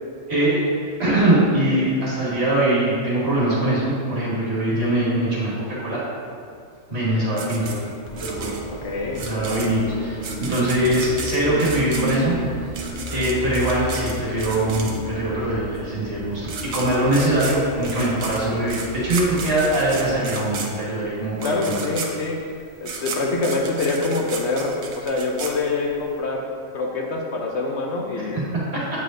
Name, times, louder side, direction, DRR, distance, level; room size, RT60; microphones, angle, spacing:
voice 1, 0.3-0.6 1.0-6.0 6.9-7.8 8.2-8.5 9.2-12.3 13.1-21.8 28.2-29.0, right 1 dB, 55° right, -7 dB, 1.9 m, -22 dB
sound 1, 7.4-15.3 16.1-16.2 16.4-26.1, right 5 dB, 90° right, 1.1 m, -34 dB
sound 2, 8.0-20.2, equal, 85° left, 1.8 m, -34 dB
voice 2, 8.8-9.2 21.4-22.4 22.8-26.5 26.7-28.4, left 3 dB, 65° left, 0 dB, 0.9 m, -25 dB
8.2 x 4.9 x 2.6 m, 2.2 s
omnidirectional pair, 1.4 m